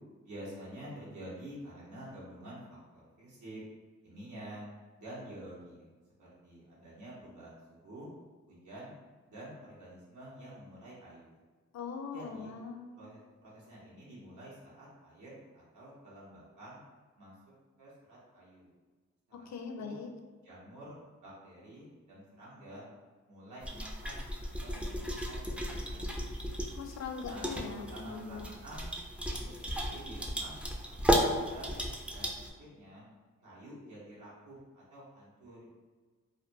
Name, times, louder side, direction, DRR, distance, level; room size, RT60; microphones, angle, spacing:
voice 1, 0.2-3.6 4.0-4.7 5.0-5.9 6.2-8.1 8.5-8.9 9.3-11.4 12.1-12.5 12.9-16.8 17.2-17.3 17.8-18.7 19.3-20.0 20.4-22.8 23.3-26.5 27.2-27.5 27.9-28.9 29.4-31.7 32.1-33.1 33.4-35.7, right 1 dB, 85° right, -7 dB, 1.0 m, -49 dB
voice 2, 11.7-13.1 19.5-20.1 26.8-28.4, left 5 dB, 70° left, 3 dB, 0.4 m, -41 dB
sound 1, 23.6-32.5, equal, 5° right, 0.3 m, -34 dB
2.5 x 2.2 x 2.5 m, 1.4 s
cardioid pair, 55°, 29 cm